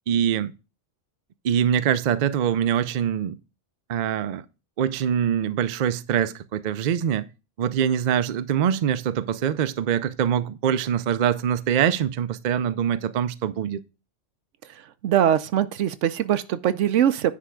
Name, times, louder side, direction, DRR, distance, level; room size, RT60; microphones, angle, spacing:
voice 1, 0.1-0.5 1.4-3.4 3.9-4.4 4.8-7.3 7.6-13.8, right 9 dB, 55° right, 0.5 m, -24 dB
voice 2, 15.0-17.3, right 10 dB, 80° right, 1.0 m, -22 dB
9.7 x 3.4 x 6.1 m
omnidirectional pair, 1.2 m